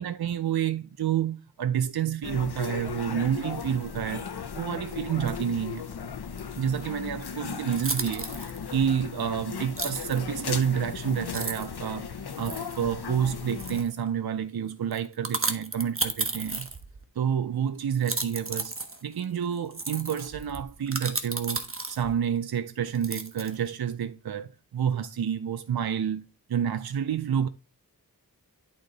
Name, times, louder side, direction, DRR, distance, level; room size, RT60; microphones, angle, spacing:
voice 1, 0.0-5.8 6.6-12.1 12.4-16.7 17.2-18.7 19.0-21.6 21.9-27.5, right 8 dB, 75° right, 0.5 m, -29 dB
sound 1, 2.2-13.8, left 6 dB, 90° left, 0.7 m, -37 dB
sound 2, 7.7-8.6 9.8-10.2 10.9-11.0 11.3-11.8 12.4-12.8 13.5-14.0 14.9-17.0 17.9-22.2 22.9-23.7, right 3 dB, 35° right, 1.0 m, -33 dB
11.0 x 3.7 x 3.9 m
wide cardioid pair, 50°, 38 cm